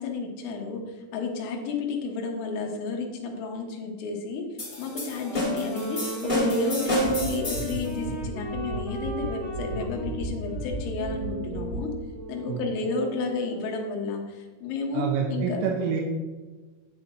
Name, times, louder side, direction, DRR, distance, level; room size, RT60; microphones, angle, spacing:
voice 1, 0.0-4.5 4.8-11.9 12.3-15.6, left 3 dB, 85° left, 1 dB, 3.8 m, -31 dB
sound 1, 4.6-7.9, equal, 15° left, 1.8 m, -29 dB
Wind instrument woodwind instrument, 5.1-13.8, right 1 dB, 35° right, 1.8 m, -36 dB
sound 2, 7.0-7.3 7.5-7.8 8.0-8.3 8.5-8.8 9.0-9.3 9.5-9.8 10.0-10.3 10.5-10.8 11.0-11.3 11.5-11.8, right 2 dB, 50° left, 2.4 m, -34 dB
voice 2, 14.9-16.0, right 6 dB, 80° right, 1 dB, 3.4 m, -27 dB
9.9 x 9.5 x 3.0 m, 1.3 s
omnidirectional pair, 5.8 m